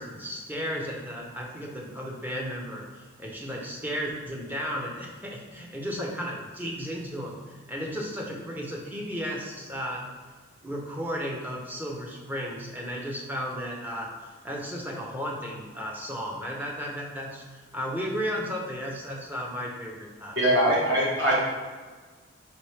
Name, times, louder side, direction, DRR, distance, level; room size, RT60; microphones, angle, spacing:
voice 1, 0.0-10.1 10.6-14.1 14.4-20.7, equal, 10° right, -1 dB, 0.5 m, -34 dB
voice 2, 20.3-21.3, equal, 60° right, -6 dB, 1.5 m, -22 dB
4.4 x 3.4 x 3.2 m, 1.4 s
head